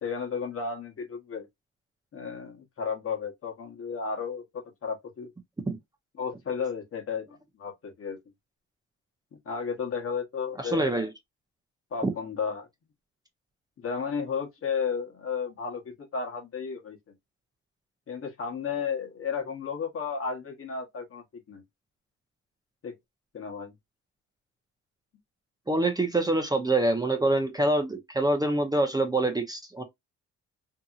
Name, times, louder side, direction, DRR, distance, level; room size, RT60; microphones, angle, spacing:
voice 1, 0.0-1.5 2.1-5.3 6.2-7.3 7.6-8.2 9.3-10.9 11.9-12.7 13.8-17.0 18.1-21.6 22.8-22.9 23.3-23.7, left 6 dB, 45° left, 1.0 m, -33 dB
voice 2, 10.6-11.1 12.0-12.1 25.7-29.8, right 2 dB, 15° right, 0.6 m, -25 dB
2.8 x 2.6 x 2.4 m
cardioid pair, 90°, 30 cm